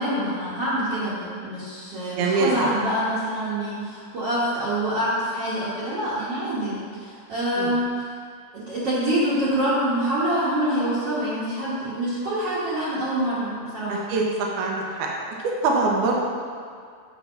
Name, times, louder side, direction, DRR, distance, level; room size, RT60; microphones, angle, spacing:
voice 1, 0.0-8.1 8.5-14.0, right 1 dB, 55° right, -11 dB, 2.0 m, -26 dB
voice 2, 2.2-2.7 7.6-7.7 13.9-15.1 15.6-16.2, right 3 dB, 75° right, -1 dB, 2.1 m, -23 dB
8.3 x 3.5 x 5.6 m, 2.2 s
omnidirectional pair, 3.8 m